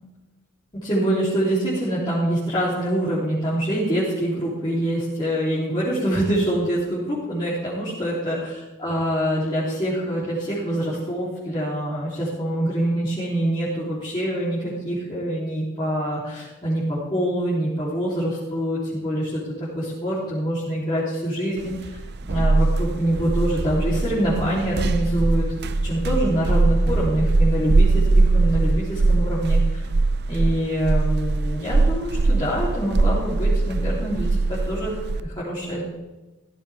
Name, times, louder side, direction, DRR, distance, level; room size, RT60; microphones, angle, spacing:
voice 1, 0.7-19.4 19.8-22.0 22.3-29.8 30.3-34.9 35.2-35.8, right 1 dB, 20° left, -10 dB, 3.4 m, -25 dB
sound 1, 21.7-35.2, right 3 dB, 50° right, 0.6 m, -21 dB
15.5 x 14.0 x 3.6 m, 1.1 s
head